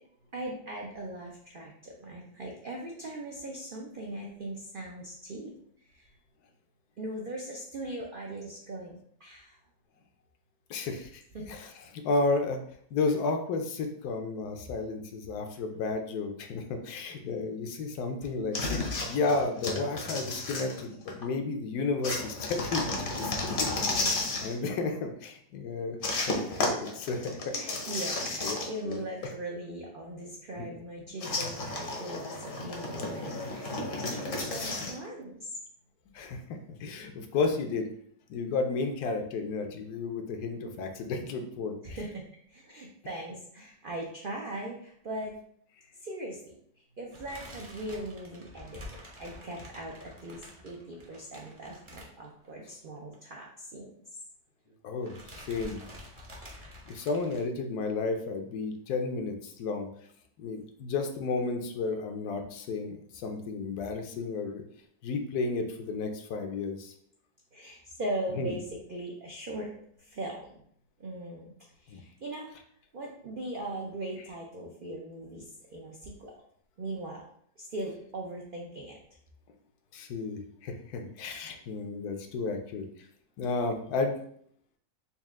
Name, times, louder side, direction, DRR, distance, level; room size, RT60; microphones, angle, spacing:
voice 1, 0.3-5.5 5.9-6.1 7.0-9.6 11.3-11.5 18.2-18.3 18.6-18.9 24.0-24.1 27.5-35.6 41.8-45.3 46.0-46.4 47.0-48.8 49.2-53.9 67.5-69.7 70.0-70.6 71.0-71.5 71.8-72.5 72.9-76.3 76.8-77.2 77.6-79.0, right 1 dB, 75° right, -1 dB, 0.5 m, -39 dB
voice 2, 10.7-11.2 11.5-12.6 12.9-18.6 19.1-26.4 26.6-27.6 28.4-28.6 28.8-29.0 30.6-30.7 36.1-37.9 38.3-42.0 54.8-55.8 56.9-59.9 60.4-64.6 65.0-66.9 68.3-68.5 71.9-72.0 79.9-82.9 83.4-84.2, left 3 dB, 80° left, 5 dB, 1.1 m, -32 dB
sound 1, 18.5-21.2 22.0-24.5 26.0-29.0 29.2-29.3 31.2-35.0, left 2 dB, 50° left, 0.7 m, -33 dB
sound 2, 47.1-52.7 53.0-53.1 53.4-53.5 54.5-54.8 55.0-57.4, equal, 25° right, 0.7 m, -48 dB
4.2 x 2.4 x 3.5 m, 0.64 s
omnidirectional pair, 1.7 m